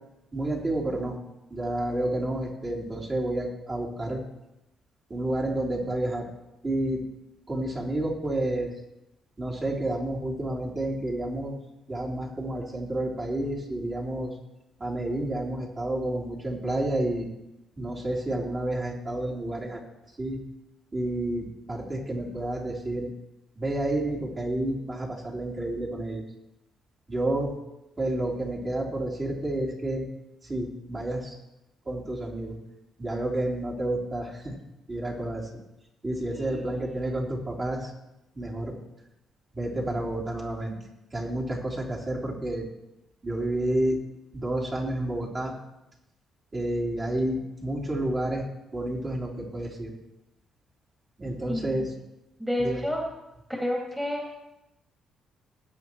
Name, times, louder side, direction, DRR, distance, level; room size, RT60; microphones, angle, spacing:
voice 1, 0.3-1.2 1.5-4.2 5.1-6.3 6.6-7.0 7.5-8.7 9.4-11.5 11.9-14.3 14.8-17.3 17.8-19.8 20.2-20.4 20.9-23.1 23.6-26.2 27.1-27.5 28.0-30.0 30.5-31.4 31.9-32.6 33.0-34.5 34.9-35.5 36.0-37.9 38.4-38.7 39.5-40.7 41.1-42.7 43.2-44.0 44.3-45.5 46.5-48.4 48.7-49.9 51.2-51.9 52.6-52.8, right 1 dB, 30° right, -4 dB, 3.6 m, -30 dB
voice 2, 36.2-36.6 51.5-51.9 52.4-53.0 53.5-54.2, left 1 dB, 5° right, -2 dB, 2.3 m, -30 dB
20.0 x 8.7 x 3.1 m, 0.92 s
cardioid pair, 90°, 0 cm